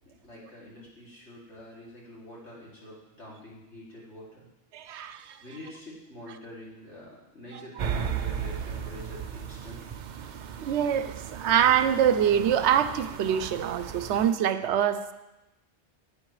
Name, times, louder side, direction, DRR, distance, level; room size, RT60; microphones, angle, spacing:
voice 1, 0.0-4.5 5.4-10.0, left 1 dB, 90° left, -6 dB, 3.0 m, -46 dB
voice 2, 4.7-5.4 7.5-7.8 10.6-15.1, right 9 dB, 80° right, 11 dB, 0.9 m, -25 dB
sound 1, 7.8-14.3, right 8 dB, 55° right, 0.5 m, -36 dB
9.9 x 8.9 x 3.2 m, 0.97 s
omnidirectional pair, 1.2 m